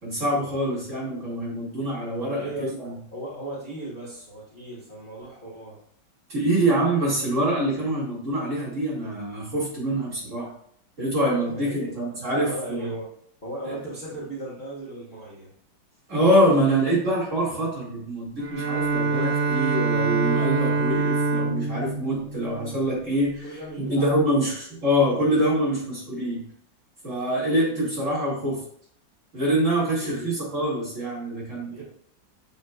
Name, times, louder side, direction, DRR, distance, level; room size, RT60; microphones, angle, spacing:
voice 1, 0.0-2.9 6.3-10.5 11.0-12.9 13.6-13.7 16.1-26.4 27.0-28.6 29.3-31.8, right 1 dB, 40° right, -8 dB, 2.5 m, -25 dB
voice 2, 2.3-2.7 3.1-5.8 11.5-11.9 12.3-13.0 13.4-15.5 23.4-24.5 30.0-30.3 31.7-31.8, right 1 dB, 30° left, -7 dB, 1.3 m, -37 dB
Bowed string instrument, 18.4-23.4, right 4 dB, 55° right, 0.6 m, -25 dB
7.1 x 3.2 x 2.3 m, 0.63 s
omnidirectional pair, 2.1 m